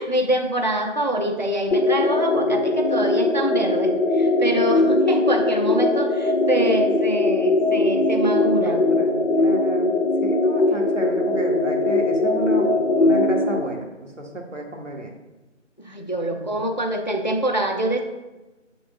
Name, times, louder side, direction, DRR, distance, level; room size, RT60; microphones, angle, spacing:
voice 1, 0.0-8.9 15.8-18.0, right 1 dB, 40° left, 4 dB, 0.5 m, -25 dB
sound 1, 1.7-13.6, left 2 dB, 70° left, 0.8 m, -20 dB
voice 2, 8.6-9.9 10.2-15.1 16.3-16.5, right 1 dB, 75° right, 1 dB, 1.6 m, -32 dB
7.9 x 6.1 x 2.4 m, 1.1 s
figure-of-eight pair, 170°, 37 cm